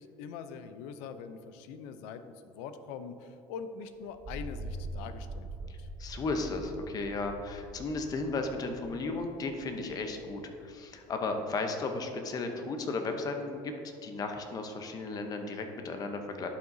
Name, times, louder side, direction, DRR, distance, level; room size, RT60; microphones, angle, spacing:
voice 1, 0.0-2.2 2.5-5.9, left 6 dB, 90° left, 10 dB, 0.5 m, -43 dB
sound 1, 4.1-10.6, right 1 dB, 20° right, 1.8 m, -43 dB
voice 2, 6.0-13.7 14.0-16.5, left 3 dB, 35° left, 5 dB, 0.8 m, -35 dB
11.5 x 5.7 x 2.7 m, 2.7 s
cardioid pair, 130°, 11 cm